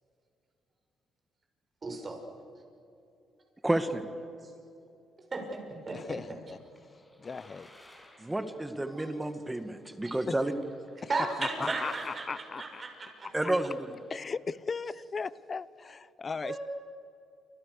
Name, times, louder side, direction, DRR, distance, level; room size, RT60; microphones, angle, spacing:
voice 1, 1.8-2.2 4.4-4.5 5.3-6.2 8.9-9.1 10.0-10.2 11.1-13.3 16.4-16.6, right 3 dB, 35° right, 2 dB, 6.7 m, -35 dB
voice 2, 3.6-4.0 8.2-10.5 13.3-13.9, right 1 dB, 10° right, 9 dB, 2.0 m, -30 dB
voice 3, 5.9-6.6 7.2-7.7 10.3-10.4 11.4-12.8 14.1-16.6, left 5 dB, 35° left, 18 dB, 0.8 m, -37 dB
sound 1, 6.5-14.3, left 1 dB, 10° left, 6.0 m, -59 dB
29.5 x 27.0 x 6.8 m, 2.7 s
cardioid pair, 90°, 0 cm